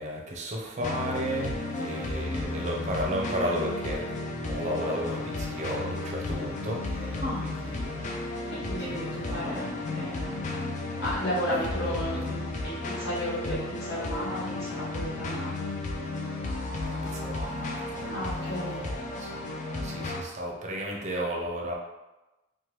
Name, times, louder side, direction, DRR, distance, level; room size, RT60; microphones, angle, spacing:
voice 1, 0.0-8.1 8.8-9.7 11.9-12.4 16.9-19.4 19.8-21.8, equal, 35° right, -1 dB, 0.5 m, -34 dB
sound 1, 0.8-20.2, left 2 dB, 40° left, 0.4 m, -33 dB
voice 2, 7.2-7.5 8.4-10.5 11.0-15.6 18.0-18.8, equal, 55° left, -9 dB, 1.3 m, -34 dB
2.9 x 2.2 x 3.1 m, 1.0 s
head